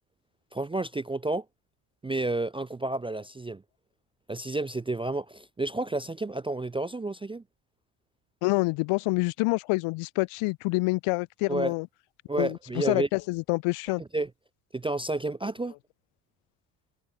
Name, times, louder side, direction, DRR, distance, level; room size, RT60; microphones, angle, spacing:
voice 1, 0.5-1.4 2.0-3.6 4.3-7.4 11.5-11.7 12.3-13.1 14.1-14.3 14.7-15.7, right 2 dB, 10° right, 0.4 m, -30 dB
voice 2, 8.4-11.9 12.4-14.0, left 25 dB, 80° left, 1.0 m, -27 dB
cardioid pair, 95°, 50 cm